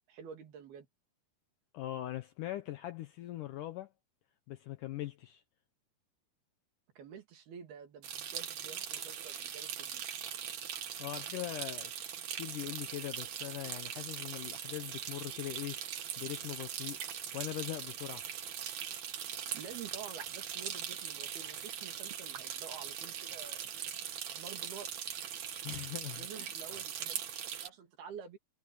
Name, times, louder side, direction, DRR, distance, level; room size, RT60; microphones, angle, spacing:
voice 1, 0.1-0.9 7.0-10.0 19.5-23.7 24.2-24.9 26.2-28.4, right 7 dB, 75° right, 4.5 m, -49 dB
voice 2, 1.7-3.9 4.5-5.4 11.0-11.9 12.4-18.3 25.6-26.5, left 14 dB, 75° left, 1.9 m, -41 dB
sound 1, 8.0-27.7, right 9 dB, 55° right, 2.3 m, -41 dB
omnidirectional pair, 4.6 m